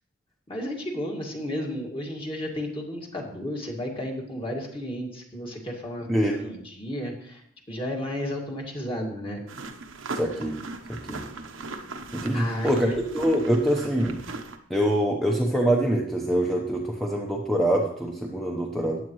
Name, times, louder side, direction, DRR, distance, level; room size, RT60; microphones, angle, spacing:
voice 1, 0.5-7.4 7.7-9.4 11.1-11.2 12.3-13.0, equal, 25° left, -1 dB, 2.1 m, -33 dB
sound 1, 9.5-14.6, right 3 dB, 80° right, 1.0 m, -38 dB
voice 2, 10.1-10.6 10.9-11.2 12.1-14.2 14.7-19.1, right 1 dB, ahead, -1 dB, 0.9 m, -24 dB
15.0 x 9.9 x 3.1 m, 0.66 s
head